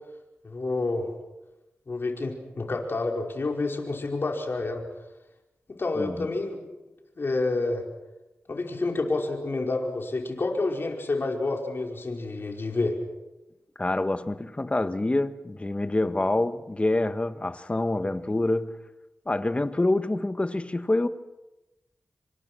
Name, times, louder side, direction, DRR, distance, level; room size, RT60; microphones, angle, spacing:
voice 1, 0.4-1.1 1.9-4.8 5.8-6.6 7.2-7.8 8.5-13.0, left 3 dB, 55° left, 5.0 m, -28 dB
voice 2, 6.0-6.3 13.8-18.7 19.3-21.1, left 2 dB, 25° left, 1.5 m, -26 dB
27.5 x 25.0 x 6.2 m
cardioid pair, 60°, 5 cm